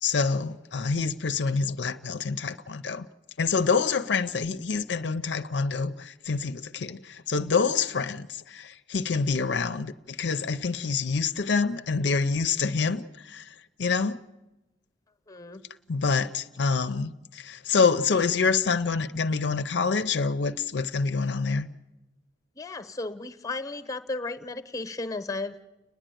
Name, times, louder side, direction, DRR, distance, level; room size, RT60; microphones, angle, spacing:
voice 1, 0.0-3.1 3.4-14.2 15.9-21.7, left 5 dB, 65° left, 0.6 m, -27 dB
voice 2, 15.3-15.6 22.5-25.5, left 3 dB, 20° left, 0.9 m, -34 dB
30.0 x 10.0 x 9.1 m
head